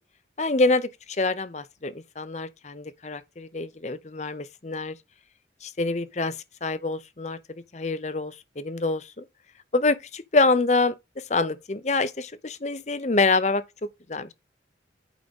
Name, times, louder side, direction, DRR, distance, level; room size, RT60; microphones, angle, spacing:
voice 1, 0.4-5.0 5.6-6.3 6.6-7.4 7.7-9.2 9.7-13.6 14.1-14.3, left 3 dB, 40° left, 0.7 m, -26 dB
9.1 x 3.7 x 5.2 m
head